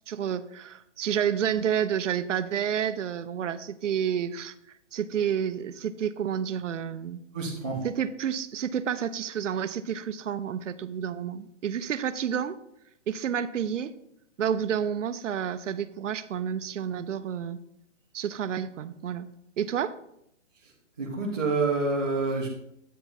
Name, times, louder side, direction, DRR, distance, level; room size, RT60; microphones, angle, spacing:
voice 1, 0.1-4.5 4.9-7.2 7.8-12.6 13.1-13.9 14.4-17.6 18.1-19.3 19.6-19.9, right 8 dB, 75° right, 13 dB, 0.7 m, -30 dB
voice 2, 7.3-7.8 20.6-20.7 21.0-22.5, right 3 dB, 5° right, -10 dB, 0.3 m, -27 dB
8.5 x 5.7 x 4.2 m, 0.78 s
hypercardioid pair, 155°, 37 cm